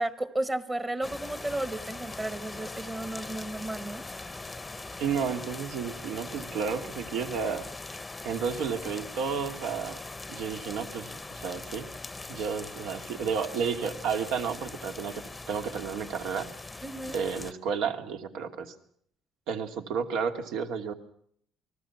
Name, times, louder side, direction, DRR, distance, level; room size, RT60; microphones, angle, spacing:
voice 1, 0.0-4.1 16.8-17.2, right 1 dB, 15° right, 1.2 m, -33 dB
sound 1, 1.0-17.5, left 3 dB, 10° left, 0.8 m, -41 dB
voice 2, 5.0-7.7 8.2-10.0 10.3-11.9 12.3-16.5 17.1-18.7 19.5-20.9, right 6 dB, 80° right, 2.6 m, -32 dB
29.0 x 20.0 x 6.0 m
cardioid pair, 160°, 0 cm